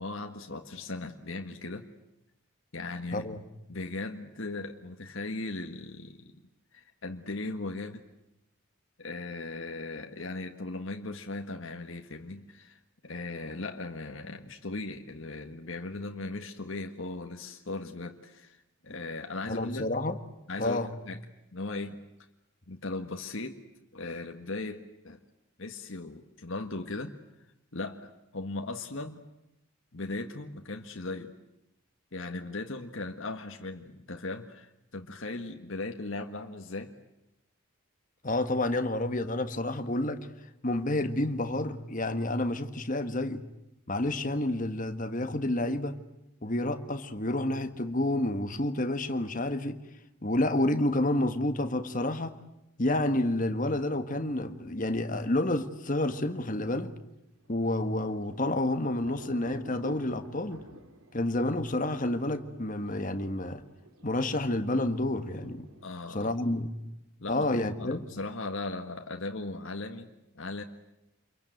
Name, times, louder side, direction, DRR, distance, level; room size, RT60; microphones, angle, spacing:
voice 1, 0.0-1.8 2.7-3.3 3.7-6.4 6.7-8.0 9.0-19.9 20.5-21.2 21.5-22.0 22.7-23.6 23.9-25.2 25.6-27.1 27.7-29.2 29.9-31.3 32.1-36.9 65.8-66.3 67.2-70.1 70.3-70.6, left 2 dB, 65° left, 1.6 m, -38 dB
voice 2, 3.1-3.4 19.5-20.2 20.6-20.9 38.2-40.2 40.6-43.4 43.9-46.0 46.4-49.8 50.2-52.4 52.8-56.9 57.5-60.6 61.1-63.6 64.0-65.7 66.1-66.7 67.3-68.0, left 1 dB, 35° left, 1.6 m, -29 dB
Thunder, 57.4-66.9, right 1 dB, 75° right, 3.2 m, -52 dB
27.5 x 23.0 x 9.3 m
head